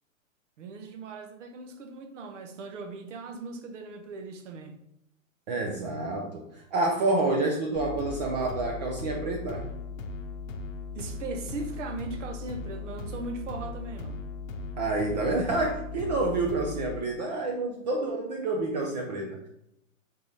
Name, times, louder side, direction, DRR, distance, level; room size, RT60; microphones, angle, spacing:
voice 1, 0.6-4.8 10.9-14.2, right 3 dB, 65° right, 0.9 m, -39 dB
voice 2, 5.5-9.7 14.8-19.5, right 2 dB, 35° right, 0.5 m, -28 dB
sound 1, 7.7-17.0, left 4 dB, 80° left, 0.7 m, -38 dB
3.8 x 3.2 x 4.1 m
hypercardioid pair, 155°, 39 cm